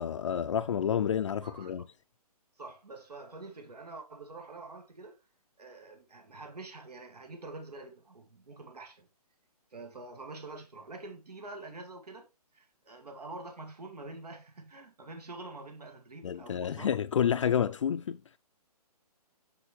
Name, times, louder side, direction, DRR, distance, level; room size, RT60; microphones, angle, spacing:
voice 1, 0.0-1.8 16.2-18.2, left 8 dB, 50° left, 0.5 m, -29 dB
voice 2, 1.4-1.7 2.6-5.2 5.6-9.1 9.7-16.9, right 2 dB, 80° right, 2.1 m, -46 dB
7.0 x 6.7 x 3.2 m
figure-of-eight pair, 145°, 20 cm